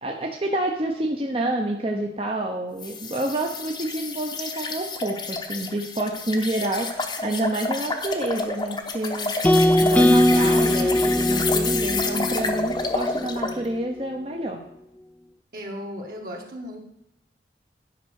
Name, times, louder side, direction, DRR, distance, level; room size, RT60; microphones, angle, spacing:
voice 1, 0.0-9.3 9.8-14.6, right 1 dB, 30° right, 1 dB, 0.9 m, -28 dB
sound 1, 2.8-13.6, left 3 dB, 25° left, 0.9 m, -29 dB
sound 2, 9.4-13.6, left 1 dB, 10° left, 0.4 m, -20 dB
voice 2, 15.5-16.8, equal, 55° right, 0 dB, 1.8 m, -35 dB
11.0 x 5.5 x 6.4 m, 0.83 s
head